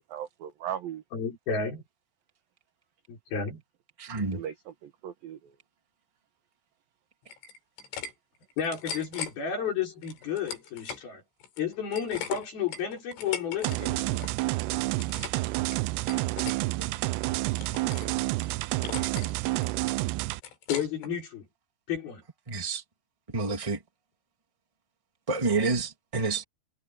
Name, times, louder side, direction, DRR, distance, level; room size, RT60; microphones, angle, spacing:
voice 1, 0.0-1.0 4.2-5.6, right 10 dB, 65° right, 2.5 m, -38 dB
voice 2, 1.1-1.8 3.1-3.6 8.6-11.2 11.6-14.3 20.7-21.5 21.9-22.2, left 7 dB, 50° left, 6.4 m, -32 dB
voice 3, 4.0-4.4 16.8-16.9 22.5-22.8 23.3-23.8 25.3-26.4, right 4 dB, 30° right, 0.5 m, -29 dB
sound 1, 7.3-8.1 8.4-9.3 10.0-11.0 11.4-13.8 14.0-14.4 14.7-15.4 15.7-16.6 17.0-18.1 18.4-18.5 18.8-19.3 19.6-21.1, left 7 dB, 75° left, 5.5 m, -39 dB
sound 2, 13.6-20.4, right 21 dB, 85° right, 2.4 m, -29 dB
omnidirectional pair, 5.5 m